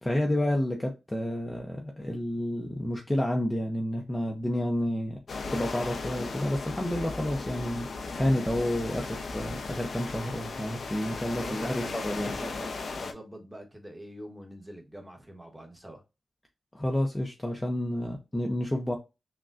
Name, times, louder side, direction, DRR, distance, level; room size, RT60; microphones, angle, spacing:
voice 1, 0.0-5.2 5.5-7.9 8.2-12.3 16.7-19.0, left 1 dB, 15° left, 0.6 m, -30 dB
sound 1, 5.3-13.1, left 3 dB, 65° left, 0.6 m, -36 dB
voice 2, 11.4-12.7 13.0-16.0, right 1 dB, 5° right, 1.1 m, -44 dB
6.1 x 2.2 x 2.5 m
wide cardioid pair, 135°, 0 cm